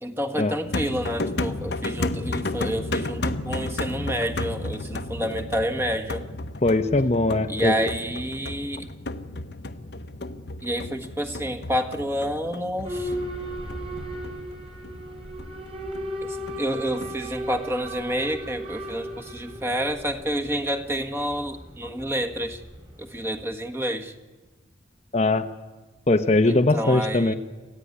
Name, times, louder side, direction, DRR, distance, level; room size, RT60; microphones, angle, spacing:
voice 1, 0.0-6.2 7.5-8.9 10.6-13.1 16.2-22.6 23.0-24.1 26.5-27.3, equal, 15° right, 3 dB, 1.6 m, -29 dB
sound 1, 0.7-17.2, left 2 dB, 60° left, 1.0 m, -33 dB
voice 2, 6.6-7.8 25.1-25.5 26.1-27.3, left 2 dB, 35° left, 7 dB, 0.8 m, -20 dB
Boat Water vehicle / Alarm, 12.8-23.5, equal, 30° right, 4.1 m, -36 dB
27.0 x 14.5 x 9.8 m, 1.2 s
head